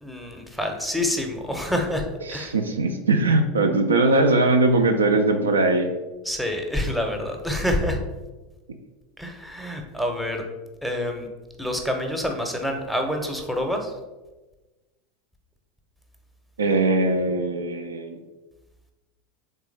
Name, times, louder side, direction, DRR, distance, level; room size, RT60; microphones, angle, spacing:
voice 1, 0.0-2.5 6.2-8.0 9.2-10.4 10.8-11.3 11.6-13.9, left 1 dB, ahead, 3 dB, 0.7 m, -27 dB
voice 2, 2.3-5.9 16.6-18.2, right 2 dB, 80° right, 6 dB, 0.3 m, -20 dB
3.6 x 3.2 x 3.3 m, 1.1 s
figure-of-eight pair, 80°, 0 cm